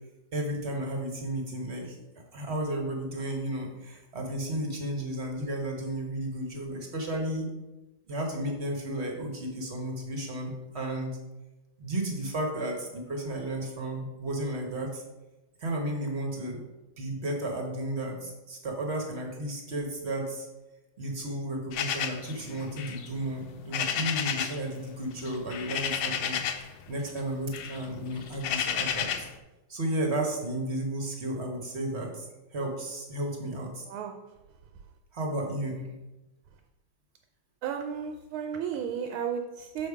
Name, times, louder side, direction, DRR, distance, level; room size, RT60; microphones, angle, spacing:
voice 1, 0.3-2.0 2.3-7.5 8.1-11.2 11.8-15.0 15.6-16.6 17.0-20.5 21.0-29.1 29.7-32.3 32.5-33.8 35.1-35.9, right 1 dB, 40° right, 2 dB, 1.1 m, -33 dB
sound 1, 21.7-24.7 24.9-26.8 27.1-29.4, left 8 dB, 80° left, 1.4 m, -32 dB
voice 2, 33.9-34.2 37.6-39.9, right 7 dB, 80° right, 5 dB, 1.4 m, -33 dB
6.7 x 5.1 x 4.8 m, 1.0 s
omnidirectional pair, 2.3 m